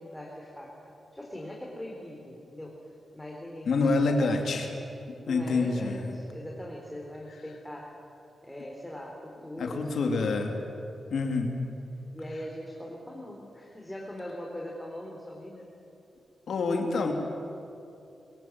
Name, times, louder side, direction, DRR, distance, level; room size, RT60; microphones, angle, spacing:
voice 1, 0.0-2.8 3.1-4.6 5.2-8.0 8.4-10.5 12.1-15.7, left 1 dB, 10° left, -1 dB, 4.0 m, -41 dB
voice 2, 3.7-4.7 5.3-6.2 9.6-10.5 11.1-11.5 16.5-17.1, left 3 dB, 75° left, 3 dB, 2.8 m, -27 dB
23.5 x 17.0 x 9.6 m, 2.8 s
cardioid pair, 65°, 0 cm